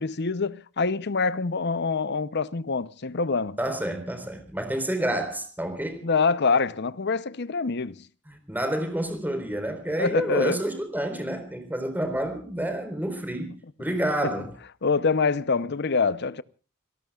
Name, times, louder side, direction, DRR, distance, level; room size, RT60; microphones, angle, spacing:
voice 1, 0.0-3.6 6.0-8.1 10.0-10.6 14.8-16.4, left 4 dB, 55° left, 0.8 m, -25 dB
voice 2, 3.6-6.0 8.3-13.5 13.8-14.5, right 1 dB, 10° right, 4.3 m, -29 dB
29.0 x 18.5 x 2.4 m
head